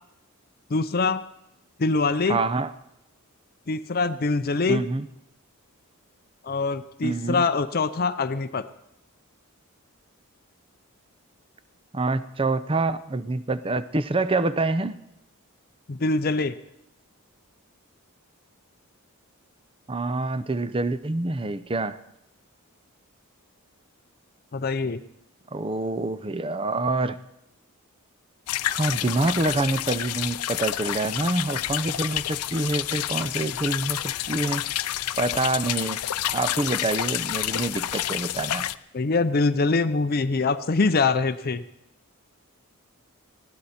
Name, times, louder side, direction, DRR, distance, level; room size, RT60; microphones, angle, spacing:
voice 1, 0.7-1.2 1.8-2.4 3.7-4.9 6.4-8.7 15.9-16.6 24.5-25.0 38.9-41.6, left 3 dB, 45° left, 12 dB, 0.5 m, -24 dB
voice 2, 2.3-2.7 4.7-5.1 7.0-7.4 11.9-15.0 19.9-22.0 25.5-27.2 28.7-34.7 35.2-36.0 36.3-38.7, right 2 dB, 25° right, 13 dB, 0.6 m, -26 dB
sound 1, 28.5-38.8, left 12 dB, 90° left, 0.5 m, -29 dB
19.5 x 16.5 x 4.3 m, 0.83 s
head